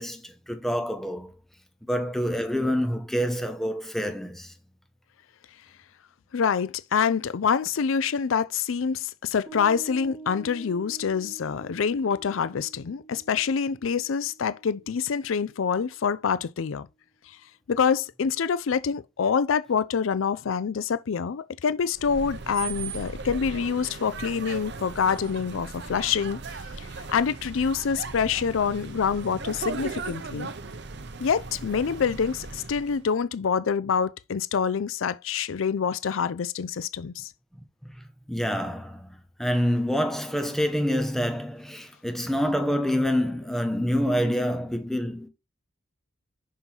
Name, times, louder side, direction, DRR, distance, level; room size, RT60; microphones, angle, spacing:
voice 1, 0.0-1.3 1.9-4.5 37.8-37.9 38.3-45.3, equal, ahead, 1.0 m, -27 dB
voice 2, 6.3-16.9 17.7-26.4 26.8-30.5 31.2-37.3, left 6 dB, 90° left, 0.5 m, -26 dB
Piano, 9.5-16.2, right 3 dB, 25° right, 1.3 m, -47 dB
sound 1, 21.9-33.0, right 4 dB, 60° right, 0.7 m, -37 dB
5.6 x 5.5 x 4.4 m
head